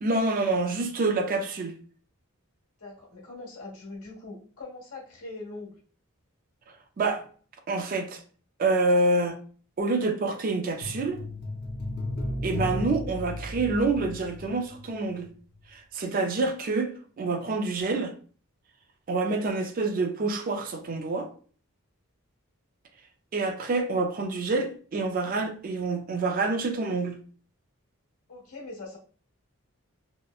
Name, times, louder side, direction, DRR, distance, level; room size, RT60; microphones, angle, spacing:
voice 1, 0.0-1.7 7.0-7.2 7.7-8.2 8.6-9.4 9.8-11.2 12.4-15.3 15.7-18.1 19.1-21.3 23.3-27.2, right 3 dB, 40° right, 0.3 m, -27 dB
voice 2, 2.8-5.7 28.3-29.0, left 2 dB, 80° left, 1.2 m, -42 dB
sound 1, 10.8-15.3 15.5-15.6, left 1 dB, 45° left, 0.5 m, -34 dB
2.8 x 2.1 x 2.3 m
head